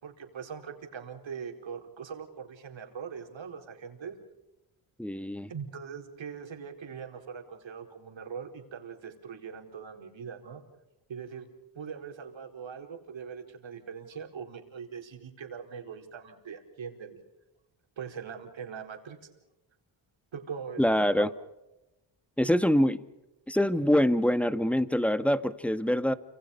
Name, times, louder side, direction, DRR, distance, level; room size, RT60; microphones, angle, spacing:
voice 1, 0.0-4.2 5.5-10.6 11.1-11.5 11.7-17.2 18.0-19.2 20.3-21.3, right 6 dB, 65° right, 4 dB, 4.5 m, -41 dB
voice 2, 5.0-5.5 20.8-21.3 22.4-23.0 23.5-26.1, equal, 5° left, 12 dB, 1.5 m, -25 dB
29.0 x 26.5 x 5.4 m, 0.95 s
cardioid pair, 70°, 49 cm